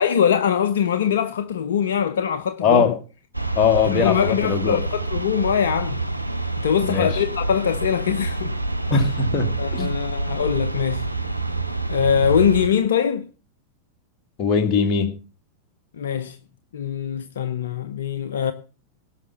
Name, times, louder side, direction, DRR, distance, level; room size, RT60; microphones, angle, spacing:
voice 1, 0.0-2.9 3.8-6.0 6.6-8.5 9.6-11.1 11.9-13.3 16.0-16.4 16.7-18.5, left 8 dB, 65° left, 0.7 m, -22 dB
voice 2, 2.6-2.9 3.6-4.8 6.8-7.1 8.9-9.9 14.4-15.1, left 5 dB, 35° left, 2.4 m, -20 dB
sound 1, 3.3-12.7, right 2 dB, 90° right, 0.9 m, -27 dB
17.5 x 5.9 x 6.8 m
figure-of-eight pair, 90°, 0 cm